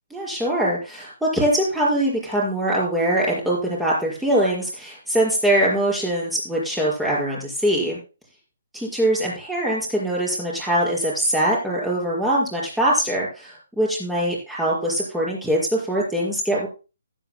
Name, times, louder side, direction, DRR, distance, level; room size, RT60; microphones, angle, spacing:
voice 1, 0.1-8.0 8.7-16.7, right 1 dB, 5° right, -4 dB, 5.4 m, -22 dB
15.0 x 12.0 x 2.2 m, 0.31 s
figure-of-eight pair, 140°, 0 cm